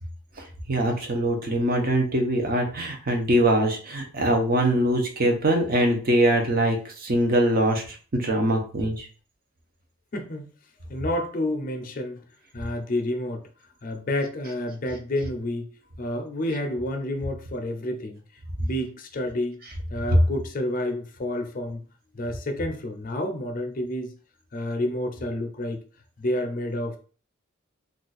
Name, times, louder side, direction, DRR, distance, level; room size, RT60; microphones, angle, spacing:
voice 1, 0.7-9.1, right 1 dB, 45° right, 0.7 m, -23 dB
voice 2, 10.1-10.5 10.9-12.2 12.5-13.4 13.8-15.7 16.0-18.2 18.6-19.6 19.9-21.8 22.1-24.1 24.5-25.8 26.2-27.0, left 1 dB, 40° left, 0.5 m, -29 dB
2.5 x 2.3 x 4.0 m
head